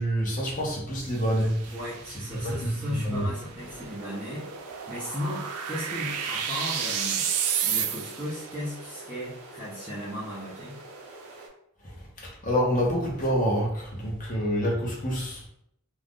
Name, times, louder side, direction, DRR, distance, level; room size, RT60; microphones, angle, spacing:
voice 1, 0.0-1.7 2.4-3.3 11.8-15.4, equal, 35° left, -3 dB, 0.8 m, -27 dB
sound 1, 1.0-8.4, right 8 dB, 90° right, 0.4 m, -32 dB
voice 2, 1.7-4.5 4.9-7.3 7.6-10.8, left 1 dB, 5° right, -10 dB, 0.6 m, -36 dB
sound 2, 3.6-11.5, right 3 dB, 70° right, 0.8 m, -45 dB
2.5 x 2.4 x 3.5 m, 0.73 s
head